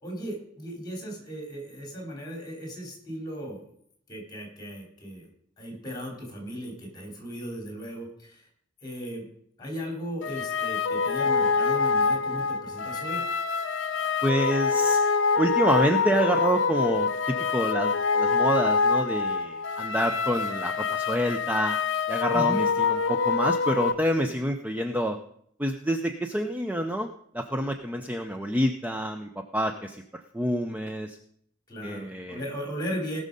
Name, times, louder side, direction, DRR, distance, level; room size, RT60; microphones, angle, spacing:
voice 1, 0.0-3.7 4.1-5.3 5.6-8.5 8.8-9.3 9.6-13.2 22.3-22.6 31.7-33.2, equal, 20° left, 1 dB, 3.7 m, -36 dB
sound 1, 10.2-23.9, left 5 dB, 65° left, 0.7 m, -25 dB
voice 2, 14.2-15.0 15.4-21.8 22.1-25.2 25.6-27.1 27.3-30.0 30.3-31.2 31.8-32.4, equal, 10° right, 6 dB, 0.5 m, -27 dB
18.5 x 6.3 x 5.3 m, 0.68 s
head